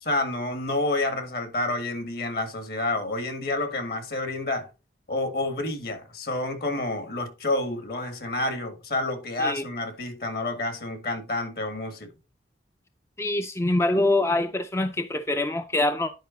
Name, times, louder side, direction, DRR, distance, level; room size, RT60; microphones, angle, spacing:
voice 1, 0.0-4.7 5.1-12.1, left 2 dB, 55° left, 1.9 m, -29 dB
voice 2, 13.2-16.1, left 2 dB, 15° left, 0.4 m, -24 dB
10.0 x 5.2 x 3.9 m
head